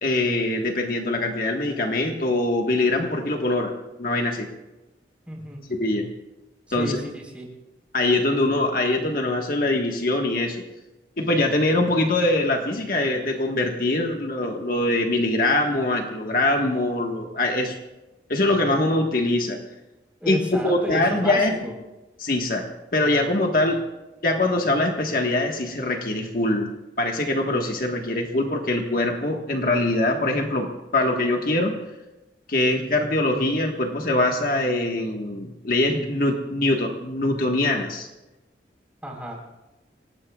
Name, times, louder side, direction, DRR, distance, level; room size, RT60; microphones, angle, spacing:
voice 1, 0.0-4.5 5.8-6.1 6.7-7.0 7.9-10.6 11.2-17.7 18.3-19.6 20.3-21.5 22.2-23.8 24.2-26.7 27.0-31.7 32.5-38.1, left 2 dB, 50° left, 2 dB, 1.5 m, -23 dB
voice 2, 5.3-5.6 6.7-7.5 20.2-21.7 39.0-39.4, equal, 10° right, -1 dB, 4.1 m, -32 dB
28.0 x 18.5 x 2.4 m, 1.1 s
head